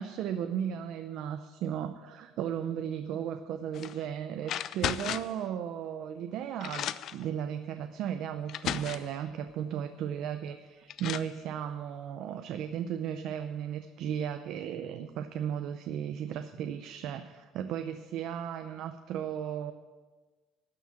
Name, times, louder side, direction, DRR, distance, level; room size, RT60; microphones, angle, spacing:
voice 1, 0.0-19.7, right 9 dB, 50° right, 8 dB, 0.5 m, -35 dB
sound 1, 3.7-4.0 4.5-5.4 6.2-6.3 6.6-7.2 8.0-8.1 8.5-9.2 10.5-10.6 10.9-11.3, left 11 dB, 45° left, 0.3 m, -35 dB
12.5 x 5.9 x 8.6 m, 1.4 s
cardioid pair, 175°, 0 cm